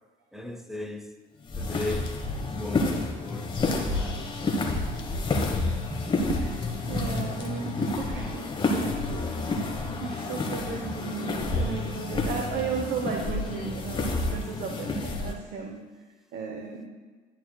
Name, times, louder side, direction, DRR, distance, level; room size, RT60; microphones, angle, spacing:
voice 1, 0.3-1.0 1.6-2.1 2.5-2.8 3.2-4.1, left 1 dB, ahead, 6 dB, 0.7 m, -36 dB
sound 1, 1.4-15.3, left 3 dB, 30° left, 1.2 m, -29 dB
voice 2, 6.3-15.8 16.3-16.9, right 5 dB, 65° right, 2 dB, 0.9 m, -35 dB
11.5 x 9.2 x 2.3 m, 1.4 s
cardioid pair, 110°, 17 cm